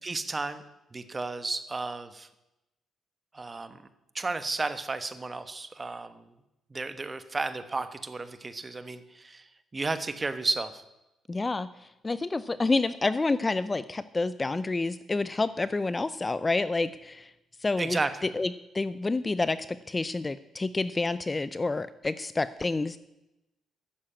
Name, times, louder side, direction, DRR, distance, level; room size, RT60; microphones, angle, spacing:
voice 1, 0.0-0.6 0.9-2.3 3.3-3.8 4.1-6.2 6.7-9.5 9.7-10.8 17.8-18.3, right 3 dB, 25° right, 11 dB, 1.2 m, -33 dB
voice 2, 11.3-17.3 17.6-23.0, left 3 dB, 25° left, 15 dB, 0.5 m, -29 dB
11.5 x 7.5 x 8.7 m, 0.93 s
cardioid pair, 90°, 0 cm